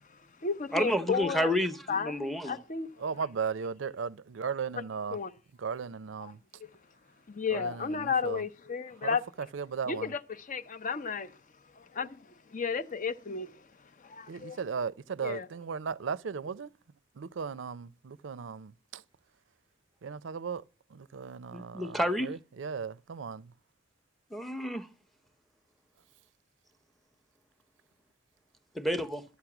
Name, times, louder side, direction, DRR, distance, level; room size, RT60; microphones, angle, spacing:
voice 1, 0.1-1.5 1.9-2.9 5.1-5.3 6.2-6.3 7.3-9.2 9.9-10.2 10.5-11.3 11.8-13.7 14.0-14.6 15.2-15.5, left 5 dB, 45° left, 0.6 m, -33 dB
voice 2, 0.7-2.6 21.5-22.3 24.3-24.9 28.7-29.2, equal, ahead, 0.7 m, -30 dB
voice 3, 3.0-5.2 5.6-6.4 7.5-8.4 9.0-10.1 14.3-16.7 17.1-19.0 20.0-20.6 20.9-23.5, right 6 dB, 80° right, 0.5 m, -36 dB
13.0 x 8.3 x 5.9 m
head